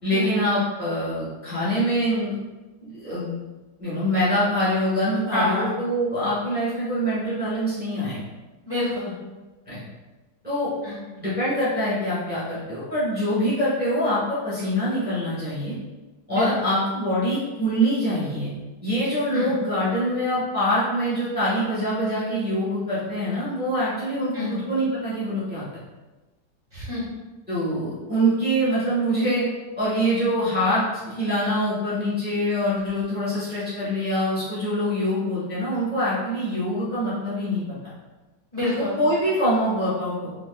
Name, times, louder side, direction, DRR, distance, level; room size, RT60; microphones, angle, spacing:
voice 1, 0.0-2.3 2.8-3.4 3.8-8.2 9.7-9.8 10.4-10.7 11.2-15.8 16.3-18.5 18.8-25.6 27.5-29.5 29.8-37.9 39.0-40.3, equal, 5° right, -11 dB, 0.9 m, -24 dB
voice 2, 5.3-5.7 8.6-9.1 10.8-11.0 16.3-16.8 19.3-19.5 24.3-24.5 26.7-27.0 38.5-39.0, left 2 dB, 30° left, -11 dB, 0.7 m, -27 dB
3.4 x 3.1 x 2.3 m, 1.2 s
omnidirectional pair, 2.1 m